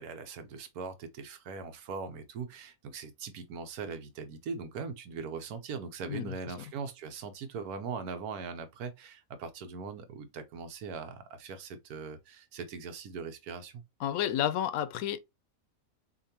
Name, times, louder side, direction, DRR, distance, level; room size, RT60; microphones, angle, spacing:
voice 1, 0.0-13.8, right 5 dB, 85° right, 1.3 m, -40 dB
voice 2, 14.0-15.2, left 10 dB, 80° left, 1.0 m, -30 dB
6.7 x 2.6 x 2.8 m
omnidirectional pair, 1.6 m